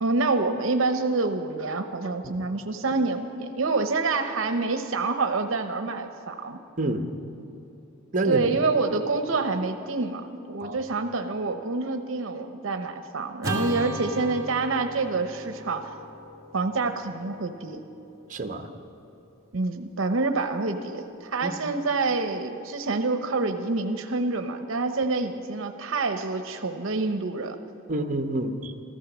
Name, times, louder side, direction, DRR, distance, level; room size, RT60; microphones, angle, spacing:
voice 1, 0.0-6.6 8.2-15.9 16.5-17.8 19.5-27.6, right 3 dB, 70° right, 7 dB, 0.8 m, -27 dB
voice 2, 8.1-8.4 10.6-10.8 18.3-18.7 21.4-21.5 27.9-28.7, right 2 dB, 40° right, 5 dB, 0.9 m, -27 dB
Acoustic guitar / Strum, 13.4-17.9, equal, 20° right, 1.9 m, -35 dB
15.0 x 14.0 x 6.1 m, 2.9 s
head